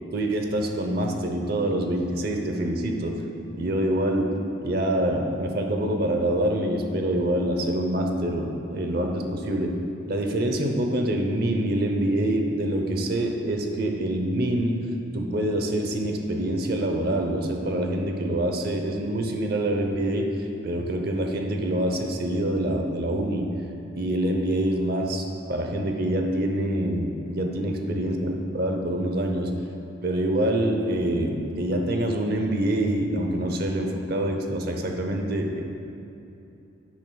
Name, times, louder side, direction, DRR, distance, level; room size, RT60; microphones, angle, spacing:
voice 1, 0.1-3.2 3.5-4.3 4.6-9.8 10.1-14.8 15.1-20.3 20.6-23.5 24.0-29.5 30.0-35.6, right 1 dB, 50° right, 3 dB, 0.8 m, -25 dB
10.5 x 9.5 x 2.3 m, 2.8 s
head